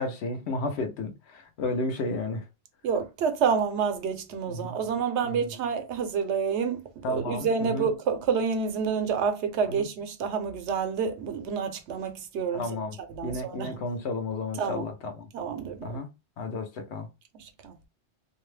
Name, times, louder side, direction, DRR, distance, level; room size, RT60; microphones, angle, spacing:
voice 1, 0.0-2.4 4.4-4.8 5.2-5.5 7.0-7.9 9.7-9.9 12.5-13.0 13.2-15.3 15.8-16.1 16.4-17.1, left 2 dB, 70° left, 0.9 m, -32 dB
voice 2, 2.8-6.8 7.1-12.8 13.1-13.8 14.6-14.9 15.3-16.0 17.3-17.7, right 6 dB, 75° right, 0.9 m, -28 dB
2.7 x 2.1 x 3.1 m
omnidirectional pair, 1.2 m